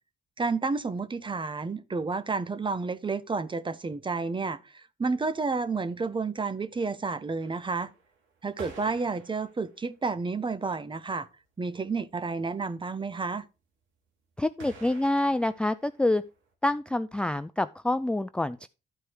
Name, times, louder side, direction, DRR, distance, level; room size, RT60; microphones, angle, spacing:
voice 1, 0.4-7.9 8.4-11.3 11.6-13.5, right 4 dB, 25° right, 0.8 m, -31 dB
sound 1, 7.4-10.2 10.8-10.9 11.1-11.2 11.5-11.6 11.8-12.3 14.6-16.5, right 4 dB, 80° right, 2.6 m, -50 dB
voice 2, 14.4-16.2 16.6-18.7, left 1 dB, 5° left, 0.4 m, -27 dB
12.0 x 4.6 x 4.6 m
cardioid pair, 90°, 20 cm